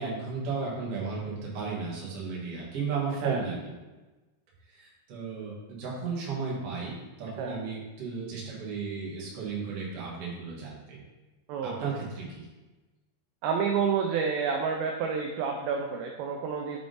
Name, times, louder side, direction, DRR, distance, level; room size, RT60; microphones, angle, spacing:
voice 1, 0.0-3.5 4.7-11.0 11.6-12.5, right 5 dB, 55° right, -5 dB, 1.7 m, -34 dB
voice 2, 11.5-11.9 13.4-16.8, right 6 dB, 85° right, 3 dB, 2.2 m, -29 dB
6.8 x 3.6 x 3.8 m, 1.2 s
omnidirectional pair, 4.7 m